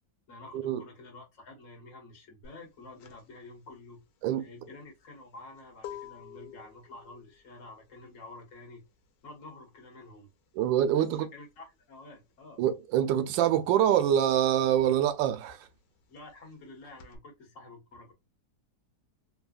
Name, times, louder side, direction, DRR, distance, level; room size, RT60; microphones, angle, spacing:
voice 1, 0.3-4.0 4.4-8.8 9.2-10.3 10.9-12.6 16.1-18.1, left 2 dB, 50° left, 1.4 m, -49 dB
sound 1, 2.4-12.7 13.0-17.2, left 10 dB, 75° left, 1.3 m, -50 dB
voice 2, 10.5-11.3 12.6-15.7, right 10 dB, 90° right, 1.3 m, -25 dB
3.4 x 2.2 x 2.3 m
omnidirectional pair, 2.0 m